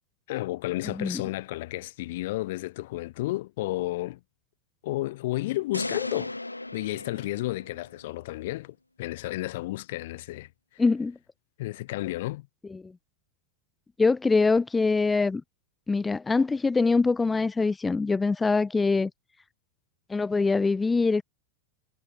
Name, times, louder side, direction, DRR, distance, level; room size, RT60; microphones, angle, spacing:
voice 1, 0.3-4.2 4.8-6.3 6.7-10.5 11.6-12.5, left 18 dB, 50° left, 1.3 m, -32 dB
voice 2, 0.8-1.2 10.8-11.2 12.7-12.9 14.0-15.4 15.9-19.1 20.1-21.2, left 4 dB, 10° left, 0.6 m, -24 dB
sound 1, 5.7-8.0, left 2 dB, 85° left, 0.6 m, -36 dB
figure-of-eight pair, 90°, 0 cm